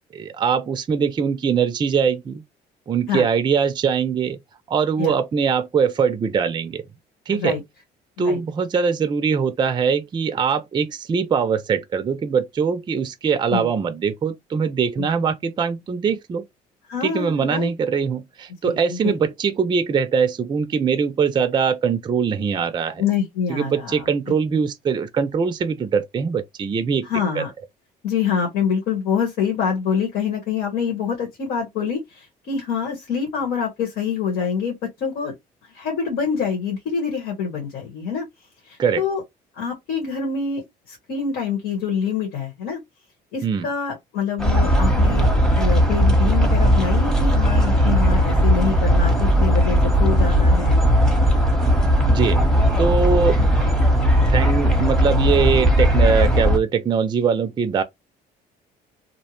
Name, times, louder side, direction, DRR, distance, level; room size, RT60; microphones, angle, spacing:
voice 1, 0.1-2.4 2.9-4.4 4.7-6.8 7.3-7.6 8.2-16.5 17.0-23.0 23.5-27.1 27.4-27.5 38.8-39.0 43.4-43.7 52.1-52.4 52.8-53.8 54.3-57.8, right 6 dB, 25° right, 0.4 m, -22 dB
voice 2, 16.9-17.7 18.6-19.2 23.0-24.1 27.0-27.5 28.0-35.3 35.7-38.2 38.6-39.2 39.6-42.8 43.3-50.8 51.0-51.2, left 6 dB, 75° left, 1.3 m, -26 dB
sound 1, 44.4-56.6, equal, 5° left, 0.8 m, -17 dB
2.7 x 2.1 x 2.9 m
cardioid pair, 110°, 17 cm